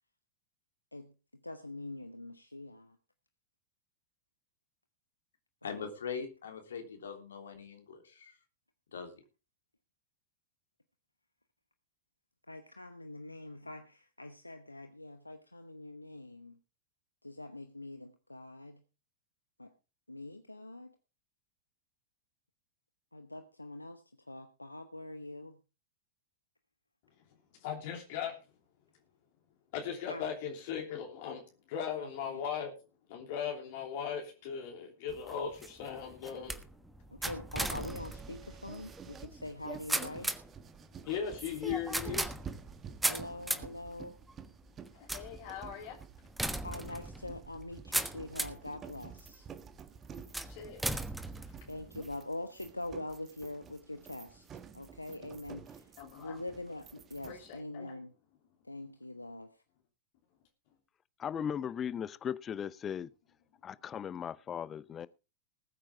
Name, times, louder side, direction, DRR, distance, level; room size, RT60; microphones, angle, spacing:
voice 1, 0.9-3.0 5.6-5.9 12.5-16.6 17.2-18.8 19.6-19.7 20.1-20.9 23.1-25.6 30.1-30.3 32.0-32.4 37.1-40.4 43.1-44.2 46.6-49.5 51.7-55.9 56.2-58.1 58.6-59.6, left 2 dB, 85° left, 1.0 m, -44 dB
voice 2, 5.6-8.3 8.9-9.1, left 6 dB, 65° left, 3.3 m, -42 dB
voice 3, 27.6-28.4 29.7-32.7 33.1-36.6 41.0-42.3 44.9-46.0 50.5-50.9 56.0-56.3 57.3-57.9, left 8 dB, 50° left, 3.0 m, -38 dB
sound 1, 35.1-48.7 49.3-49.7 50.3-52.2, right 1 dB, 5° right, 1.3 m, -38 dB
sound 2, 37.8-57.6, right 7 dB, 25° right, 1.4 m, -51 dB
voice 4, 61.2-63.1 63.6-65.1, left 8 dB, 25° left, 0.7 m, -37 dB
20.0 x 8.9 x 3.6 m
figure-of-eight pair, 90°, 0 cm